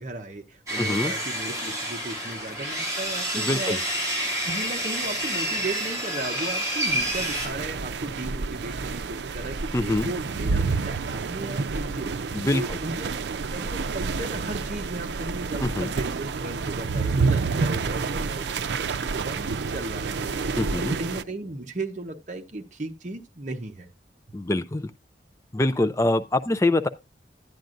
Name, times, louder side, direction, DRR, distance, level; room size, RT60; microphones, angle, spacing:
voice 1, 0.0-3.8 4.4-12.2 12.5-18.6 19.0-20.4 20.7-23.9, right 2 dB, 45° right, 0.8 m, -36 dB
Sawing, 0.7-7.5, right 1 dB, 20° right, 2.7 m, -29 dB
voice 2, 0.8-1.1 3.4-3.8 9.7-10.1 12.3-12.8 15.6-15.9 20.6-21.0 24.3-24.9 25.5-26.9, left 2 dB, 15° left, 0.4 m, -24 dB
sound 1, 6.9-21.2, right 4 dB, 85° right, 0.5 m, -29 dB
11.5 x 9.2 x 2.5 m
head